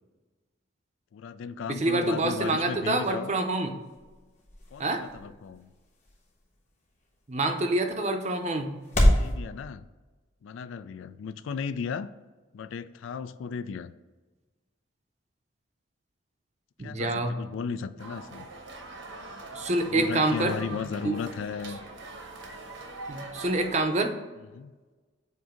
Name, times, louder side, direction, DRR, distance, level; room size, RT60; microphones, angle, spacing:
voice 1, 1.1-3.4 4.7-5.7 9.1-9.8 10.4-12.1 12.5-13.9 16.8-18.5 19.9-21.8 24.4-24.7, left 6 dB, 75° left, 14 dB, 0.3 m, -35 dB
voice 2, 1.7-3.7 4.8-5.0 7.3-8.8 16.8-17.3 19.5-20.8 21.0-21.1 23.1-24.2, right 2 dB, 35° right, 6 dB, 0.6 m, -27 dB
sound 1, 3.0-9.3, equal, 35° left, 1.2 m, -30 dB
sound 2, 18.0-23.8, right 2 dB, 70° right, 1.0 m, -42 dB
7.7 x 2.7 x 5.0 m, 1.3 s
head